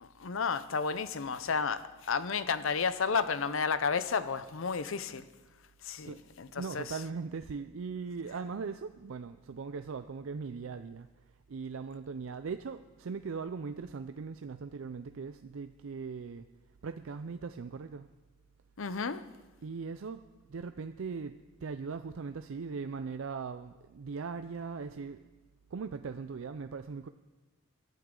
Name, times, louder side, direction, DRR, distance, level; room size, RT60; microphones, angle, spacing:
voice 1, 0.0-5.3 5.8-7.0 18.8-19.2, left 5 dB, 65° left, 0.6 m, -32 dB
voice 2, 6.6-11.1 11.5-16.4 16.8-18.1 19.6-20.2 20.5-25.2 25.7-27.1, right 5 dB, 65° right, 0.4 m, -39 dB
21.5 x 12.0 x 3.8 m
head